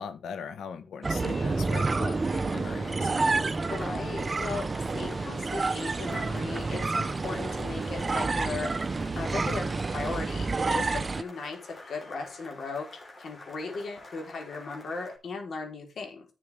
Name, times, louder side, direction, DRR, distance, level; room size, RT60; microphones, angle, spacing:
voice 1, 0.0-3.2, left 6 dB, 80° left, 1.3 m, -40 dB
sound 1, 1.0-11.2, right 3 dB, 30° right, 0.8 m, -29 dB
sound 2, 1.2-15.2, left 2 dB, 35° left, 4.1 m, -48 dB
voice 2, 3.7-4.7 4.9-16.3, left 4 dB, 60° left, 4.0 m, -37 dB
11.5 x 6.6 x 3.5 m
cardioid pair, 95°, 0 cm